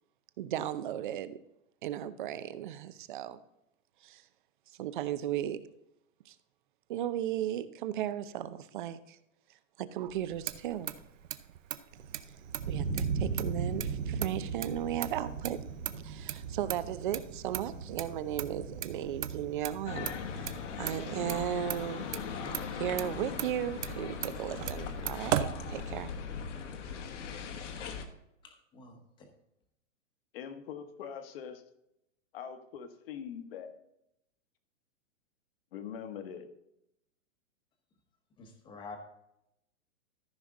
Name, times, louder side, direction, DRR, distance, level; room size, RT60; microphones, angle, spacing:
voice 1, 0.4-1.4 1.8-3.4 4.0-4.2 4.8-5.6 6.3-6.4 6.9-9.2 9.8-10.9 12.7-15.6 16.0-22.1 22.7-26.1, right 11 dB, 40° right, 14 dB, 0.6 m, -36 dB
Motor vehicle (road), 10.0-26.3, right 11 dB, 80° right, 0.8 m, -40 dB
Thunder, 11.9-22.5, right 5 dB, 60° right, 1.6 m, -39 dB
sound 1, 19.9-28.1, left 6 dB, 65° left, 1.3 m, -39 dB
voice 2, 28.4-29.3 38.4-39.0, left 4 dB, 10° left, 4 dB, 1.0 m, -48 dB
voice 3, 30.3-31.6 32.3-33.7 35.7-36.5, left 8 dB, 50° left, 9 dB, 1.2 m, -42 dB
14.0 x 5.7 x 3.7 m, 0.82 s
hypercardioid pair, 165°, 38 cm